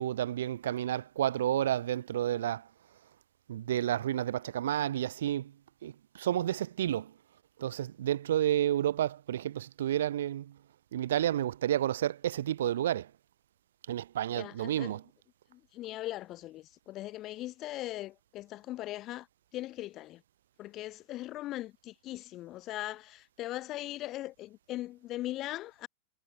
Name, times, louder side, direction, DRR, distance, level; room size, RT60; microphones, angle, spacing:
voice 1, 0.0-2.6 3.5-5.5 5.8-7.1 7.6-10.5 10.9-13.1 13.9-15.0, right 11 dB, 85° right, 0.4 m, -30 dB
voice 2, 14.3-15.0 15.5-19.3 19.5-20.2 20.6-25.9, left 15 dB, 30° left, 1.3 m, -40 dB
supercardioid pair, 150°, 0 cm